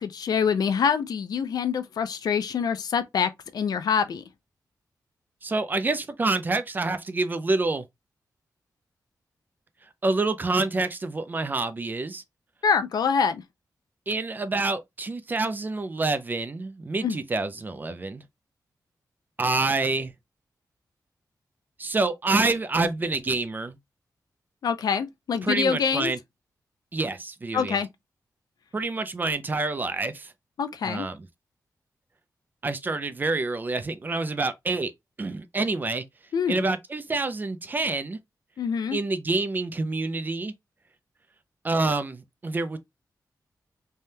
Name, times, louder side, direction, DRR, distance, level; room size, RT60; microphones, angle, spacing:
voice 1, 0.0-4.2 12.6-13.4 17.0-17.2 24.6-26.1 27.5-27.9 30.6-31.1 36.3-36.6 38.6-39.0, left 6 dB, 75° left, 0.4 m, -25 dB
voice 2, 5.4-7.8 10.0-12.2 14.1-18.2 19.4-20.1 21.8-23.8 25.4-26.2 26.9-27.8 28.7-30.3 30.8-31.3 32.6-34.9 35.2-36.0 36.5-38.2 38.9-40.5 41.6-42.8, right 3 dB, 30° right, 0.4 m, -27 dB
3.3 x 2.2 x 2.7 m
wide cardioid pair, 160°, 7 cm